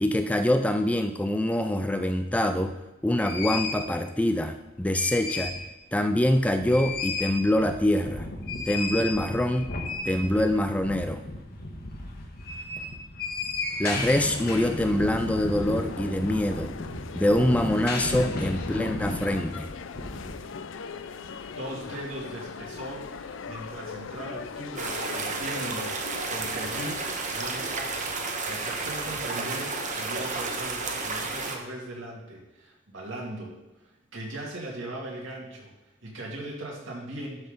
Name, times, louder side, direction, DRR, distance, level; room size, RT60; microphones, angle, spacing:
voice 1, 0.0-2.7 3.0-5.5 5.9-8.3 8.7-9.7 10.1-11.2 13.8-16.7 17.1-19.7, left 1 dB, 5° left, 7 dB, 0.4 m, -25 dB
sound 1, 2.6-2.7 3.2-3.9 4.7-5.7 6.0-6.1 6.5-20.3, left 2 dB, 50° left, 1.3 m, -34 dB
sound 2, 13.7-31.5, left 5 dB, 70° left, 0.5 m, -41 dB
voice 2, 21.4-33.5 34.1-35.7 36.0-37.5, right 1 dB, 75° right, -3 dB, 2.5 m, -39 dB
sound 3, 24.8-31.6, right 4 dB, 40° right, 1.0 m, -32 dB
12.0 x 4.1 x 5.2 m, 1.0 s
head